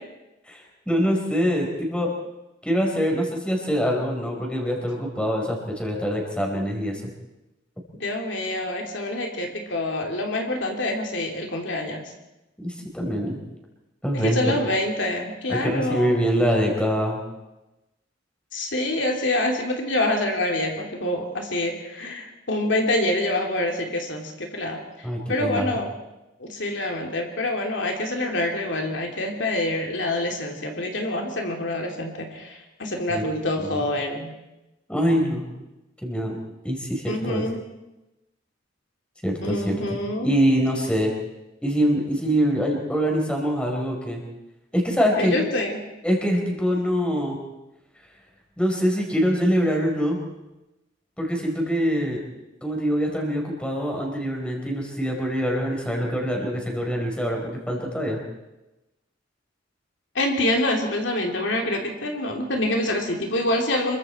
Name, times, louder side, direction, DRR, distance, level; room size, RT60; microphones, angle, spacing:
voice 1, 0.5-2.1 2.6-7.0 12.6-13.4 14.0-14.6 15.5-17.2 25.0-25.7 33.1-33.2 33.6-33.8 34.9-35.5 36.0-36.4 36.6-37.4 39.2-39.8 40.2-41.1 41.6-44.2 44.7-45.3 46.0-47.4 48.6-50.2 51.2-52.2 52.6-58.2, equal, 5° left, 0 dB, 4.5 m, -24 dB
voice 2, 8.0-12.0 14.1-16.1 18.5-25.9 26.4-34.3 37.1-37.6 39.4-40.3 45.2-45.8 60.1-64.0, left 1 dB, 70° left, 2 dB, 3.0 m, -26 dB
27.5 x 23.5 x 4.5 m, 0.98 s
head